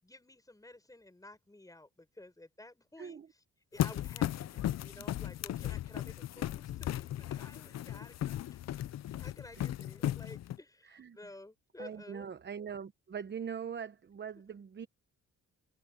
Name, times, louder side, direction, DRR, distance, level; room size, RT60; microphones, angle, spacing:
voice 1, 0.0-3.4 3.7-8.8 9.1-12.3, left 2 dB, 10° left, 6.8 m, -53 dB
sound 1, 3.8-10.6, left 12 dB, 60° left, 0.6 m, -36 dB
voice 2, 10.8-11.2 11.8-14.9, right 7 dB, 35° right, 1.0 m, -42 dB
cardioid pair, 90°, 30 cm